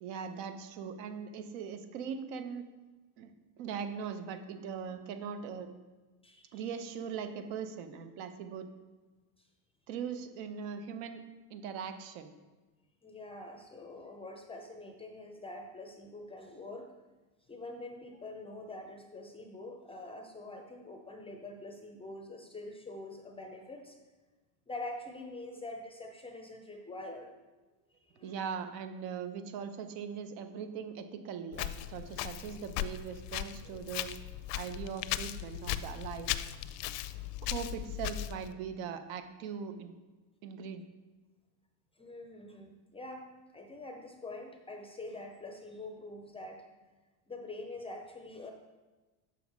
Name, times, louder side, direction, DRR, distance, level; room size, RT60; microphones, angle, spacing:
voice 1, 0.0-2.7 3.2-3.3 3.6-5.7 6.5-8.7 9.9-11.2 11.5-12.3 25.5-25.6 28.2-34.1 34.5-36.3 37.4-39.9 40.4-40.8, right 7 dB, 65° right, 8 dB, 1.1 m, -40 dB
voice 2, 6.2-6.7 13.0-16.9 17.5-24.0 24.7-27.3 28.0-28.5 42.0-46.7 47.3-48.5, left 2 dB, 10° left, 4 dB, 0.5 m, -45 dB
Walk footsteps, 31.5-38.5, left 13 dB, 80° left, 0.6 m, -38 dB
7.2 x 6.2 x 4.7 m, 1.2 s
supercardioid pair, 130°, 48 cm